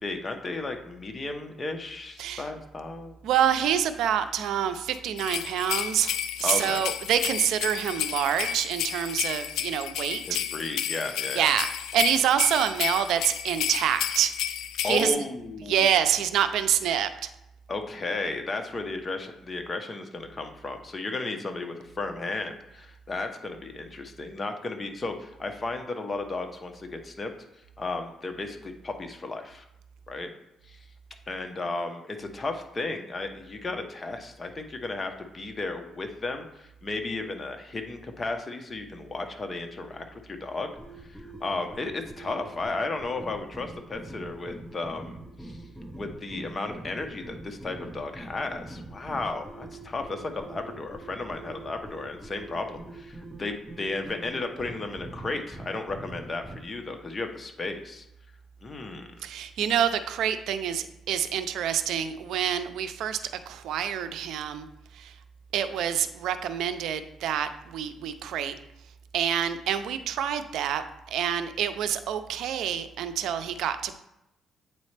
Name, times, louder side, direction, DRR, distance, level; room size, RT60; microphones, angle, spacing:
voice 1, 0.0-3.2 6.4-6.8 10.3-11.5 14.8-15.9 17.7-27.3 27.8-29.6 30.1-30.3 30.7-30.8 31.3-40.7 41.1-45.6 46.0-58.1 58.6-59.1, left 3 dB, 30° left, 5 dB, 0.8 m, -34 dB
voice 2, 3.2-10.4 11.4-14.3 14.8-15.1 15.7-17.3 59.2-63.2 63.5-64.7 64.9-65.1 65.5-68.5 69.1-73.9, right 9 dB, 80° right, 11 dB, 0.5 m, -27 dB
sound 1, 5.2-15.1, left 10 dB, 85° left, 0.4 m, -32 dB
sound 2, 40.8-56.6, right 1 dB, 5° left, 1.2 m, -44 dB
8.3 x 4.1 x 3.3 m, 0.87 s
cardioid pair, 90°, 0 cm